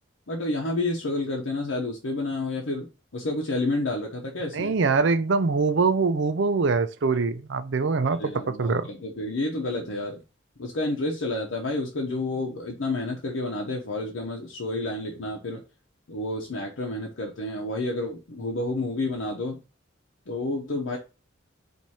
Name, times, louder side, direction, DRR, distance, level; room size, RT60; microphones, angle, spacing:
voice 1, 0.3-2.9 3.1-4.8 8.2-10.2 10.6-15.6 16.1-19.6 20.3-21.0, left 2 dB, 80° left, 0.8 m, -30 dB
voice 2, 4.5-8.3 8.6-8.9, right 4 dB, 65° right, 0.5 m, -23 dB
4.2 x 2.6 x 4.7 m
head